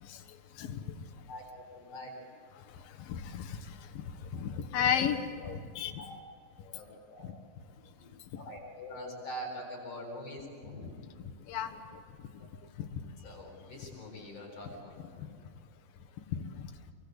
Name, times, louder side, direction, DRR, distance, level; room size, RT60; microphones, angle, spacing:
voice 1, 1.3-2.1 6.0-6.2 6.7-7.2 8.3-11.0 13.2-15.4, equal, 40° left, 0 dB, 8.5 m, -44 dB
voice 2, 3.1-3.4 4.4-5.9 11.5-11.7, left 8 dB, 70° left, 5 dB, 3.1 m, -31 dB
27.5 x 24.0 x 8.0 m, 2.2 s
omnidirectional pair, 4.4 m